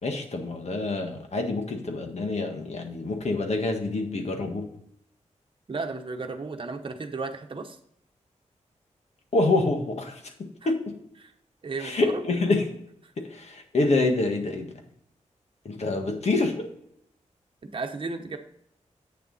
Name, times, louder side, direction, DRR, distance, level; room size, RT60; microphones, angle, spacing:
voice 1, 0.0-4.6 9.3-10.2 10.6-10.9 11.8-12.6 13.2-14.7 15.6-16.7, left 2 dB, 65° left, 4 dB, 1.7 m, -26 dB
voice 2, 5.7-7.8 10.6-10.7 11.2-11.3 11.6-12.2 17.6-18.4, right 3 dB, 45° right, 5 dB, 1.0 m, -34 dB
8.6 x 6.8 x 4.1 m, 0.73 s
wide cardioid pair, 130°, 12 cm